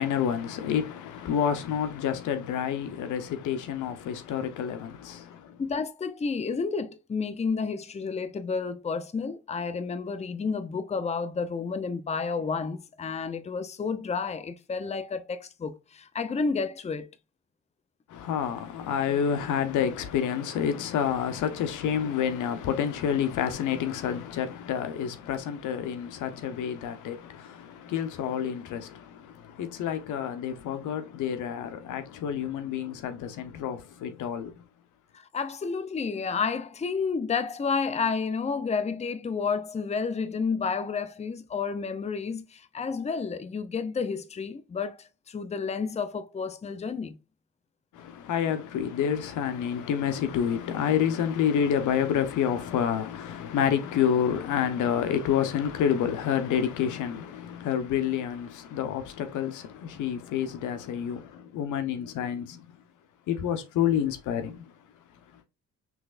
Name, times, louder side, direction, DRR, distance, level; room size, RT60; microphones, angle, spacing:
voice 1, 0.0-5.6 18.1-34.6 47.9-62.6 63.3-64.7, left 8 dB, 80° left, 0.9 m, -29 dB
voice 2, 5.6-17.1 35.1-47.2, left 5 dB, 20° left, 0.6 m, -31 dB
6.0 x 3.2 x 2.5 m
cardioid pair, 90°, 30 cm